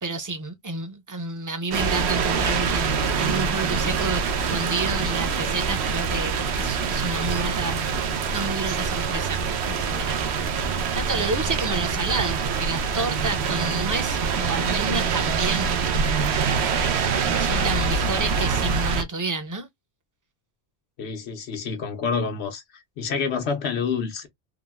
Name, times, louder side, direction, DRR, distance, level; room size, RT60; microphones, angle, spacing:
voice 1, 0.0-7.9 8.3-10.2 11.0-15.7 16.4-19.7, right 3 dB, 25° right, 0.5 m, -30 dB
sound 1, 1.7-19.0, right 5 dB, 90° right, 0.9 m, -25 dB
voice 2, 21.0-24.3, left 5 dB, 85° left, 1.0 m, -28 dB
3.7 x 2.0 x 2.2 m
omnidirectional pair, 1.1 m